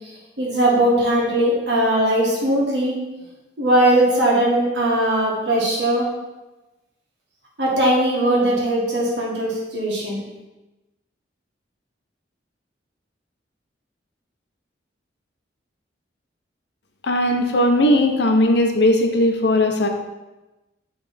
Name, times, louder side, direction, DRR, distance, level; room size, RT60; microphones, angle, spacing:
voice 1, 0.4-3.0 3.6-6.1 7.6-10.2, right 1 dB, 70° right, -3 dB, 1.7 m, -19 dB
voice 2, 17.0-19.9, left 1 dB, 65° left, 4 dB, 0.7 m, -18 dB
6.9 x 3.4 x 4.2 m, 1.1 s
head